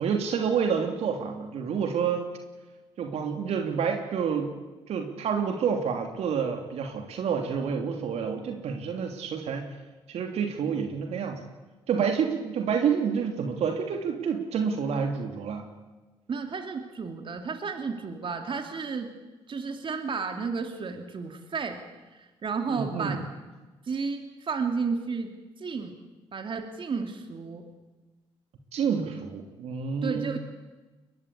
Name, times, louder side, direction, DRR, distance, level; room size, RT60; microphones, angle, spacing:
voice 1, 0.0-2.3 3.0-4.5 4.9-9.7 10.1-11.4 11.9-15.7 22.7-23.2 28.7-30.4, right 6 dB, 75° right, 4 dB, 3.1 m, -28 dB
voice 2, 16.3-19.1 19.5-21.8 22.1-23.2 23.8-25.3 25.6-26.0 26.3-27.7 30.0-30.4, right 5 dB, 50° right, 5 dB, 3.1 m, -32 dB
22.0 x 21.5 x 8.5 m, 1.2 s
supercardioid pair, 60°, 11 cm